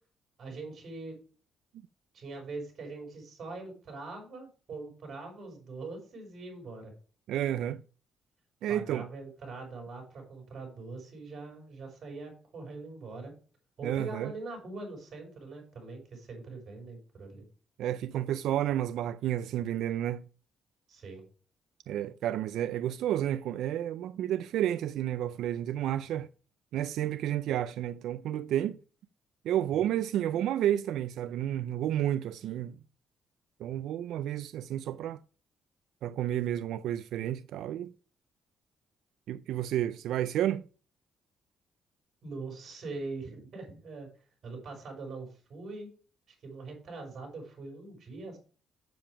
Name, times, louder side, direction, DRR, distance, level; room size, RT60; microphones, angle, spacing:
voice 1, 0.4-1.2 2.1-6.9 8.7-13.3 13.8-17.4 20.9-21.2 29.7-29.8 42.2-44.1 44.4-45.9 46.3-48.4, right 3 dB, 55° right, 4.9 m, -42 dB
voice 2, 7.3-7.8 8.6-9.1 13.8-14.3 17.8-20.3 21.9-26.3 26.7-28.8 29.4-32.8 33.6-35.2 36.0-37.9 39.3-40.6, right 11 dB, 80° right, 0.4 m, -31 dB
7.7 x 7.0 x 4.8 m
cardioid pair, 90°, 0 cm